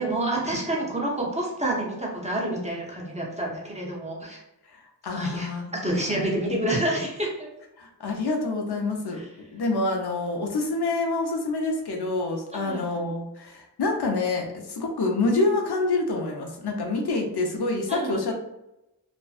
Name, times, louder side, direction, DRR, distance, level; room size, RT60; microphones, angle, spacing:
voice 1, 0.0-4.4 5.1-7.3 9.1-9.3 12.5-12.8 17.9-18.2, right 1 dB, 15° right, -3 dB, 0.8 m, -28 dB
voice 2, 4.7-5.7 5.9-6.2 7.8-9.2 9.5-18.4, left 3 dB, 70° left, 1 dB, 0.6 m, -27 dB
2.5 x 2.2 x 2.4 m, 0.90 s
wide cardioid pair, 50°, 41 cm